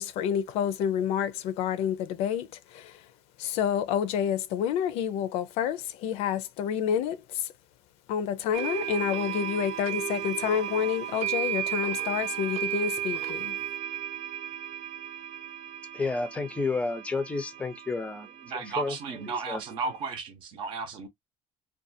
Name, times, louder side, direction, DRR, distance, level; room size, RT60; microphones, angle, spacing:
voice 1, 0.0-3.0 3.4-7.5 8.1-13.5, left 8 dB, 75° left, 0.5 m, -29 dB
sound 1, 8.5-20.2, right 11 dB, 75° right, 0.4 m, -35 dB
voice 2, 15.9-19.6, left 3 dB, 10° left, 0.5 m, -32 dB
voice 3, 18.4-21.1, right 4 dB, 50° right, 0.7 m, -34 dB
2.5 x 2.3 x 2.6 m
cardioid pair, 155°, 11 cm